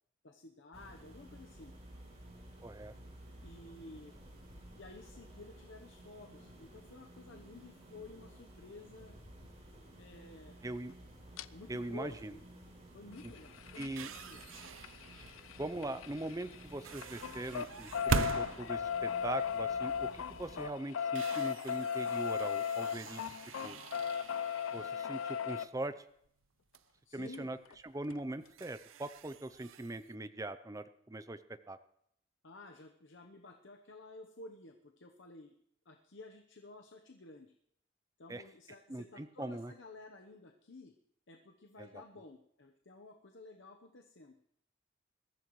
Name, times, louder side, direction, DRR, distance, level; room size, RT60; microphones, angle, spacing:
voice 1, 0.2-1.7 3.4-4.1 4.7-9.1 10.0-10.6 11.5-12.4 12.9-14.5 27.0-27.5 32.4-35.5 35.8-37.5 38.2-40.9 41.3-44.4, left 2 dB, 60° left, 4 dB, 1.0 m, -53 dB
sound 1, 0.7-20.7, right 1 dB, 35° right, 4.4 m, -55 dB
voice 2, 2.6-2.9 10.6-10.9 11.7-12.3 13.8-14.1 15.6-23.4 23.6-23.8 24.7-25.9 27.1-27.6 27.8-31.8 38.3-38.4 38.9-39.7 41.8-42.0, right 2 dB, 15° right, 12 dB, 0.5 m, -41 dB
sound 2, 11.4-11.5 13.1-16.6 16.9-25.7 27.3-27.4 27.7-27.8 28.1-28.2, left 7 dB, 85° left, 0.4 m, -37 dB
sound 3, 12.6-12.8 13.1-15.6 16.6-20.0 20.4-20.5 20.9-26.4 26.7-26.8 27.7-27.9 28.3-30.1, right 5 dB, 80° right, 0.5 m, -42 dB
21.5 x 14.5 x 3.1 m, 0.70 s
head